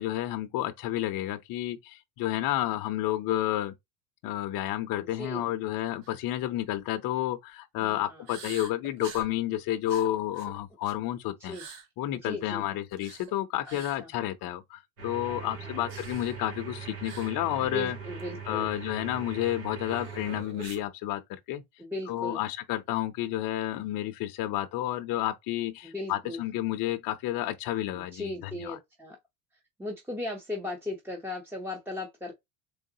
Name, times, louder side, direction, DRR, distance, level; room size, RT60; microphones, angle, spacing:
voice 1, 0.0-3.7 4.2-11.6 12.0-18.0 18.5-21.6 22.1-28.8, left 14 dB, 50° left, 0.6 m, -31 dB
voice 2, 5.0-5.4 7.8-8.3 11.4-11.7 12.2-12.6 13.7-14.1 15.3-15.8 17.6-18.7 21.8-22.4 25.8-26.4 27.9-29.2 29.8-32.3, left 2 dB, 5° right, 0.6 m, -37 dB
sound 1, 6.0-6.2 6.6-6.8 8.3-9.3 9.9-11.1 11.4-11.9 12.9-13.3 13.7-14.0 15.9-16.4 17.0-17.4 17.6-17.7 18.2-18.3 19.9-20.9, right 6 dB, 65° right, 1.2 m, -45 dB
sound 2, 15.0-20.4, right 6 dB, 90° right, 2.4 m, -41 dB
3.9 x 3.4 x 2.7 m
cardioid pair, 125°, 45 cm